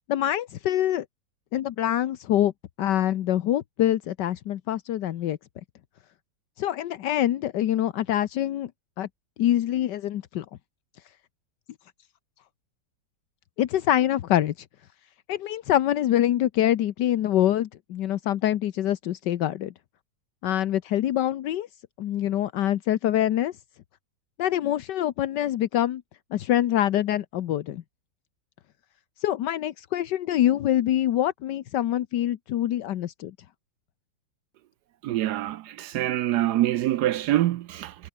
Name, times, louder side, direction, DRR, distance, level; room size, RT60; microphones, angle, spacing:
voice 1, 0.1-1.0 1.5-2.5 2.8-5.4 6.6-8.7 9.0-9.1 9.4-10.4 13.6-14.5 15.3-19.7 20.4-21.7 22.0-23.5 24.4-26.0 26.3-27.8 29.2-33.3, left 12 dB, 80° left, 1.5 m, -25 dB
voice 2, 35.0-37.9, right 14 dB, 75° right, 1.1 m, -25 dB
omnidirectional pair, 1.9 m